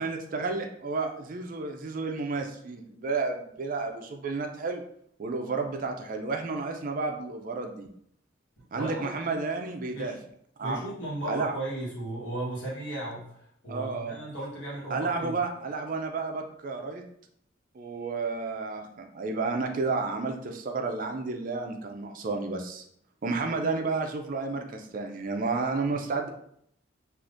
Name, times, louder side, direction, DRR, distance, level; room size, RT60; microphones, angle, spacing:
voice 1, 0.0-4.8 5.2-7.9 8.7-10.1 10.6-10.8 11.3-11.5 13.7-14.2 14.9-17.0 17.7-22.8 23.2-26.3, right 3 dB, 45° right, 4 dB, 0.4 m, -31 dB
voice 2, 8.7-9.3 9.9-10.2 10.6-15.4, right 1 dB, 70° left, -4 dB, 1.2 m, -36 dB
3.5 x 2.5 x 2.5 m, 0.68 s
head